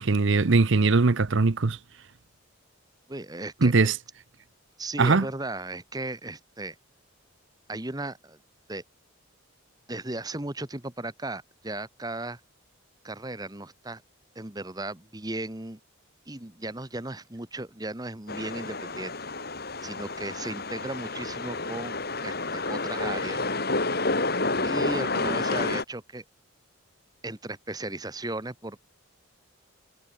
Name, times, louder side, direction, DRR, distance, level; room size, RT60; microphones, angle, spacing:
voice 1, 0.0-1.8 3.6-3.9 5.0-5.2, right 3 dB, 65° right, 0.8 m, -21 dB
voice 2, 3.1-3.9 4.8-6.8 7.7-8.4 8.7-8.8 9.9-12.4 13.0-14.0 14.3-15.8 16.3-19.1 19.8-23.4 24.6-26.2 27.2-28.8, right 2 dB, 20° right, 1.3 m, -36 dB
sound 1, 18.3-25.8, left 3 dB, 50° left, 3.0 m, -29 dB
head